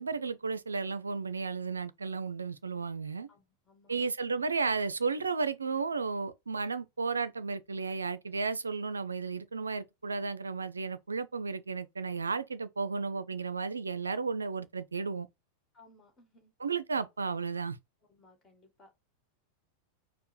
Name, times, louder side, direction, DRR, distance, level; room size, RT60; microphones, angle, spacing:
voice 1, 0.0-3.3 3.9-15.3 16.6-17.8, right 4 dB, 75° right, 0.4 m, -33 dB
voice 2, 3.3-4.0 15.7-16.5 18.1-19.0, left 2 dB, 20° left, 1.6 m, -61 dB
4.5 x 2.0 x 4.6 m
figure-of-eight pair, 90°, 0 cm